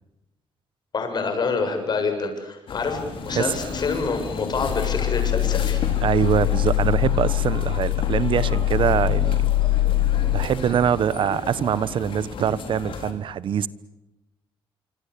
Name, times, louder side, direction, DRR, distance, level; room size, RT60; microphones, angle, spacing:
voice 1, 0.9-3.0 3.3-5.8, left 4 dB, 50° left, 7.5 m, -26 dB
sound 1, 2.7-13.1, left 5 dB, 65° left, 4.2 m, -34 dB
sound 2, 4.5-10.5, left 14 dB, 85° left, 1.7 m, -23 dB
voice 2, 6.0-9.4 10.3-13.7, right 9 dB, 65° right, 1.1 m, -23 dB
26.5 x 25.5 x 8.5 m
cardioid pair, 90°, 9 cm